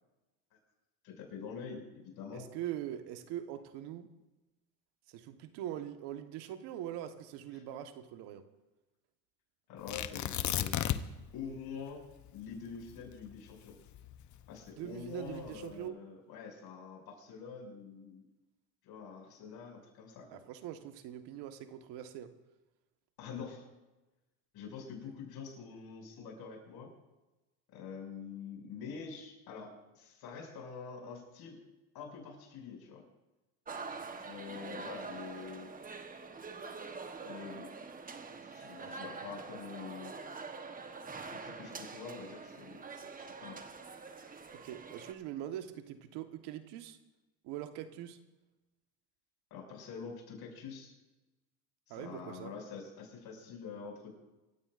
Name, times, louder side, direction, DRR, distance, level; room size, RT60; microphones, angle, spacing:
voice 1, 1.0-2.5 7.5-7.6 9.7-11.1 11.3-12.0 12.3-13.8 14.5-18.2 18.8-20.4 23.2-23.7 24.5-26.9 27.7-31.6 31.9-33.0 34.2-35.7 37.2-37.7 38.5-40.1 41.3-43.6 49.5-50.9 51.9-54.1, left 6 dB, 60° left, 1 dB, 6.5 m, -46 dB
voice 2, 2.3-4.1 5.1-8.4 14.8-16.0 20.3-22.3 38.8-39.1 44.5-47.0 47.4-48.2 51.9-52.5, right 11 dB, 70° right, 8 dB, 1.5 m, -42 dB
Tearing, 9.9-11.3 11.6-11.7 12.2-14.6 15.3-15.7, left 11 dB, 45° left, 0.9 m, -34 dB
sound 1, 33.7-45.1, right 4 dB, 20° right, 1.2 m, -45 dB
26.5 x 15.5 x 2.6 m, 1.1 s
supercardioid pair, 110°, 42 cm